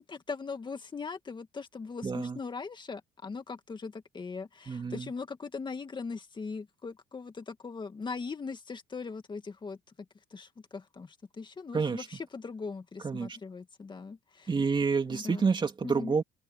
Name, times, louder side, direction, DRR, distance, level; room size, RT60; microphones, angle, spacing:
voice 1, 0.0-9.8 10.3-14.5 15.1-15.5 15.8-16.2, left 4 dB, 25° left, 2.2 m, -40 dB
voice 2, 2.0-2.4 4.7-5.1 11.7-12.1 13.0-13.4 14.5-16.2, right 5 dB, 25° right, 2.6 m, -28 dB
open air
cardioid pair, 110°, 17 cm